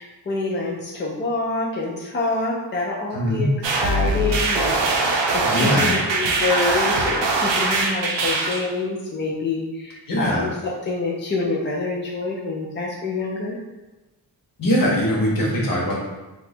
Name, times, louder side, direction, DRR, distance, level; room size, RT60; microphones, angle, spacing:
voice 1, 0.0-3.5 3.8-13.6, left 3 dB, 30° left, -3 dB, 0.3 m, -26 dB
voice 2, 3.1-3.5 5.4-6.0 10.1-10.5 14.6-16.0, equal, 50° left, -3 dB, 0.9 m, -21 dB
sound 1, 3.6-8.6, right 3 dB, 85° right, 0.6 m, -22 dB
2.7 x 2.3 x 4.1 m, 1.1 s
wide cardioid pair, 170°, 43 cm